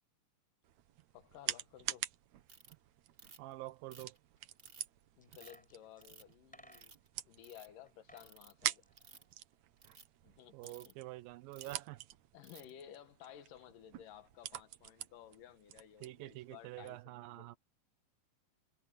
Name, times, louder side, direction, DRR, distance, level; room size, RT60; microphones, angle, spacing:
sound 1, 0.6-17.0, right 13 dB, 70° right, 1.9 m, -47 dB
voice 1, 1.1-2.1 5.2-6.9 7.3-8.8 10.2-10.9 11.7-11.8 12.3-17.6, left 10 dB, 70° left, 2.7 m, -56 dB
Ratchet pawl, 2.5-2.7 3.2-3.5 3.9-4.9 5.3-5.6 6.0-6.3 6.7-7.1 7.4-7.7 8.2-8.5 8.9-9.3 9.8-10.0 10.6-10.9 11.5-11.8 12.4-12.7, right 4 dB, 35° right, 0.9 m, -57 dB
voice 2, 3.4-4.2 10.5-12.0 16.0-17.6, right 18 dB, 85° right, 2.5 m, -47 dB
sound 2, 5.2-7.2 7.9-8.3 8.6-10.0 10.2-10.3, equal, ahead, 6.4 m, -62 dB
omnidirectional pair, 4.1 m